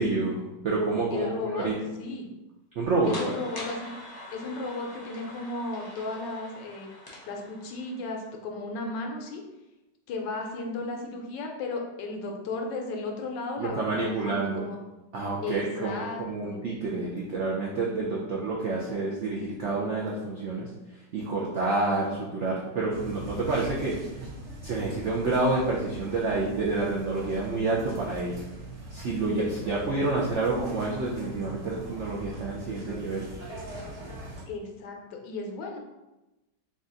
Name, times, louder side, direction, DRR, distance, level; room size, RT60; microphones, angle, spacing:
voice 1, 0.0-1.8 2.7-3.3 13.6-14.7 15.1-24.0 24.6-28.4 28.9-33.3, right 3 dB, 75° right, -4 dB, 0.6 m, -28 dB
voice 2, 1.1-1.7 2.0-2.3 3.2-3.9 4.3-6.9 7.3-9.4 10.1-14.8 15.4-16.6 34.5-35.8, left 3 dB, 85° left, 2 dB, 1.4 m, -35 dB
sound 1, 3.0-8.3, left 1 dB, 35° left, 0.3 m, -43 dB
sound 2, 22.9-34.4, right 1 dB, 50° right, 1.1 m, -41 dB
4.0 x 2.4 x 3.8 m, 1.0 s
omnidirectional pair, 1.9 m